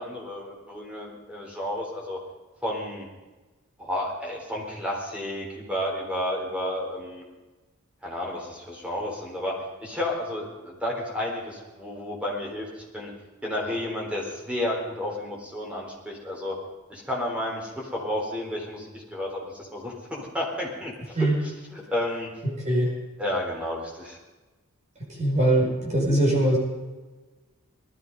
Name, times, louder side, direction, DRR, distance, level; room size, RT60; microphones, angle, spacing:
voice 1, 0.0-2.2 2.6-3.1 3.8-7.2 8.0-13.1 13.4-16.6 16.9-21.2 21.7-22.3 23.2-24.2, left 1 dB, 5° right, -2 dB, 4.0 m, -31 dB
voice 2, 22.4-22.9 25.1-26.6, right 1 dB, 30° right, -2 dB, 5.2 m, -22 dB
19.0 x 13.5 x 5.4 m, 1.2 s
head